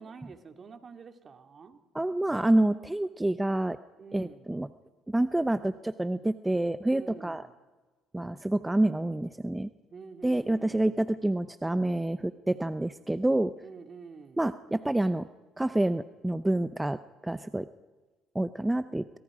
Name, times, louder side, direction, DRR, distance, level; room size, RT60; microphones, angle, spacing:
voice 1, 0.0-1.8 4.0-4.5 6.9-7.5 9.9-10.9 13.6-14.4, right 5 dB, 40° right, 6 dB, 2.4 m, -47 dB
voice 2, 1.9-3.8 4.1-4.7 5.1-7.4 8.1-9.7 10.2-13.5 14.4-15.3 15.6-17.7 18.3-19.0, right 1 dB, 10° right, 12 dB, 0.7 m, -28 dB
29.5 x 25.5 x 5.0 m, 1.3 s
supercardioid pair, 75°, 0 cm